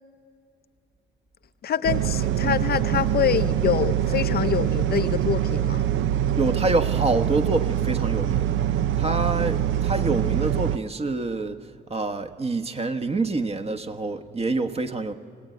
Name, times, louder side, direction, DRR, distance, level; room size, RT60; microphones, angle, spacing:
voice 1, 1.6-5.8, left 9 dB, 50° left, 0.6 m, -25 dB
sound 1, 1.8-10.8, right 11 dB, 75° right, 0.7 m, -24 dB
voice 2, 6.4-8.5 9.0-11.6 11.9-15.1, right 3 dB, 30° right, 1.3 m, -26 dB
26.5 x 18.0 x 9.3 m
cardioid pair, 90°, 20 cm